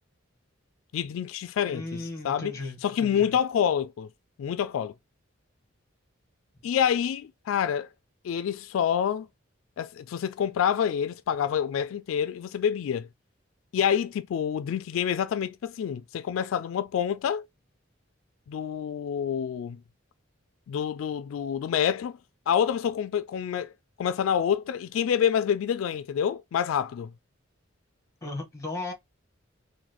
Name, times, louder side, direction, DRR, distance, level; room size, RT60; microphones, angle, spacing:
voice 1, 0.9-2.5 2.8-4.1 4.4-4.9 6.6-7.9 8.2-9.3 9.8-13.1 13.7-17.5 18.5-19.8 20.7-22.2 22.5-23.7 24.0-27.1, left 8 dB, 85° left, 0.3 m, -27 dB
voice 2, 1.6-3.3 28.2-28.9, left 2 dB, 15° left, 1.3 m, -36 dB
4.0 x 2.6 x 3.0 m
head